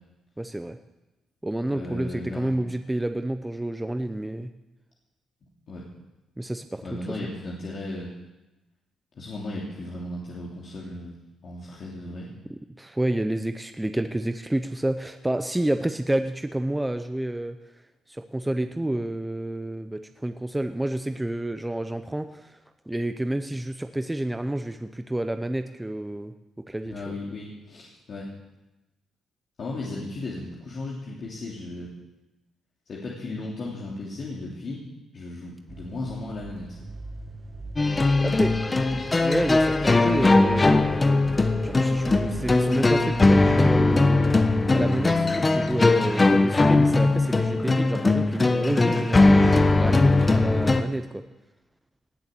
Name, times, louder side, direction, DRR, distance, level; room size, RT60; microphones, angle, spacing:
voice 1, 0.4-0.8 1.4-4.5 6.4-7.2 12.8-17.6 18.1-22.6 22.9-26.3 26.7-27.1 37.9-38.0 38.2-38.8 39.2-40.9 41.6-51.2, right 1 dB, 10° right, 8 dB, 0.7 m, -29 dB
voice 2, 1.7-2.5 5.7-5.8 6.8-8.1 9.1-11.1 11.4-12.3 26.8-28.3 29.6-31.9 32.9-34.8 35.1-36.8, left 2 dB, 50° left, -5 dB, 3.1 m, -35 dB
sound 1, 35.7-44.0, right 2 dB, 30° right, 1.9 m, -39 dB
sound 2, 37.8-50.8, left 2 dB, 25° left, 1.1 m, -20 dB
18.5 x 7.1 x 8.5 m, 1.0 s
cardioid pair, 90°, 0 cm